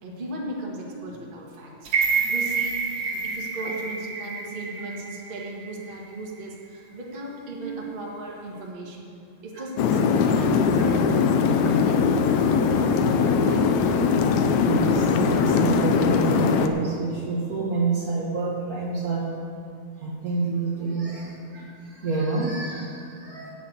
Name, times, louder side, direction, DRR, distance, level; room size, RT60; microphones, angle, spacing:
voice 1, 0.0-2.8 3.2-9.1 9.4-13.8, right 1 dB, 25° right, -3 dB, 1.1 m, -37 dB
sound 1, 1.9-6.0 6.4-6.5, right 5 dB, 55° right, 2.5 m, -28 dB
voice 2, 7.5-7.8 9.5-9.7 10.5-11.0 14.6-19.3 20.0-23.5, right 3 dB, 75° right, -3 dB, 0.8 m, -29 dB
sound 2, 9.8-16.7, left 5 dB, 80° left, 1.7 m, -21 dB
9.1 x 8.7 x 8.0 m, 2.4 s
omnidirectional pair, 3.9 m